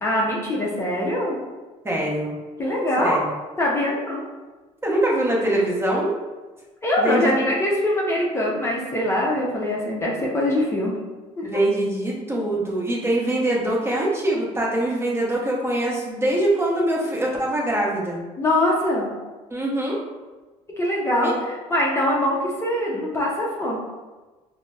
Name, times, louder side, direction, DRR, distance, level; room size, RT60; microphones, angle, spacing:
voice 1, 0.0-1.4 2.6-3.2 3.6-4.2 6.8-11.0 11.4-11.5 18.4-19.1 20.8-23.8, left 1 dB, 20° left, -4 dB, 0.6 m, -23 dB
voice 2, 1.8-2.3 3.0-3.3 4.8-6.1 7.0-7.3 11.4-18.2 19.5-20.0 21.2-21.4, right 1 dB, 20° right, -4 dB, 0.7 m, -23 dB
3.9 x 2.0 x 2.3 m, 1.2 s
supercardioid pair, 95°, 14 cm